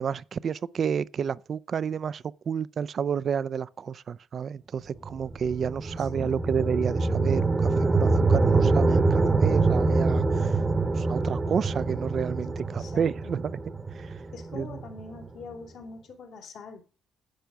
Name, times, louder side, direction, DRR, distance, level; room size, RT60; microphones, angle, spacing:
voice 1, 0.0-10.6 11.0-13.6 14.0-14.1 14.5-14.7, right 7 dB, 50° right, 0.5 m, -30 dB
sound 1, 5.0-15.3, right 3 dB, 25° right, 1.0 m, -25 dB
voice 2, 6.0-6.6 12.8-13.4 14.3-16.8, left 4 dB, 75° left, 3.1 m, -44 dB
10.5 x 5.1 x 6.8 m
cardioid pair, 90°, 0 cm